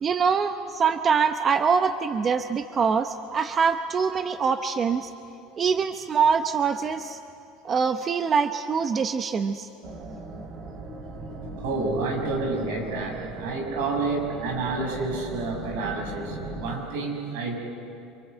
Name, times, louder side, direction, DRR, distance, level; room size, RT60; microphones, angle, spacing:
voice 1, 0.0-5.1 5.5-7.2 7.6-9.7, right 6 dB, 30° right, 9 dB, 0.9 m, -24 dB
sound 1, 9.8-16.8, right 2 dB, 50° right, 2.7 m, -38 dB
voice 2, 11.6-17.6, right 3 dB, 80° right, 2 dB, 6.6 m, -29 dB
27.0 x 23.5 x 8.0 m, 2.6 s
supercardioid pair, 110°, 0 cm